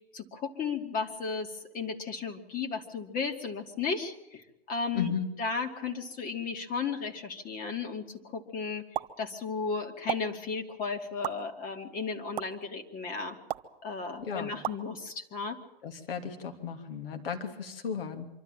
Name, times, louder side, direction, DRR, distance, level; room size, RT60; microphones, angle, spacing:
voice 1, 0.1-5.1 5.4-8.8 9.2-13.4 13.8-15.6, left 5 dB, 30° left, 4 dB, 2.6 m, -34 dB
voice 2, 4.9-5.3 14.2-14.5 15.8-18.3, left 6 dB, 65° left, 5 dB, 3.0 m, -35 dB
sound 1, 8.9-9.1 10.1-10.2 11.2-11.3 12.4-12.5 13.5-13.7 14.6-14.8, right 13 dB, 60° right, 1.4 m, -32 dB
25.5 x 13.0 x 9.1 m, 0.91 s
hypercardioid pair, 115°, 30 cm